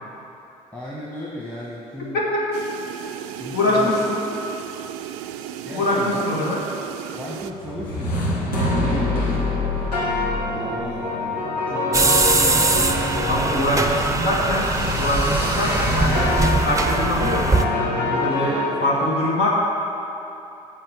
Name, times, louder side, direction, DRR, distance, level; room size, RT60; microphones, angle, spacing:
voice 1, 0.7-2.2 3.3-4.1 5.6-6.3 7.1-14.1 18.7-19.1, left 1 dB, 5° left, -5 dB, 1.7 m, -36 dB
sound 1, 2.5-7.5, right 11 dB, 60° right, 0.5 m, -35 dB
voice 2, 3.5-4.3 5.7-6.6 13.3-19.5, left 1 dB, 50° left, -5 dB, 1.6 m, -23 dB
sound 2, 7.6-18.7, left 2 dB, 80° left, 1.7 m, -25 dB
sound 3, 11.9-17.6, right 3 dB, 15° right, 0.8 m, -21 dB
7.7 x 7.5 x 8.1 m, 2.9 s
figure-of-eight pair, 50°, 20 cm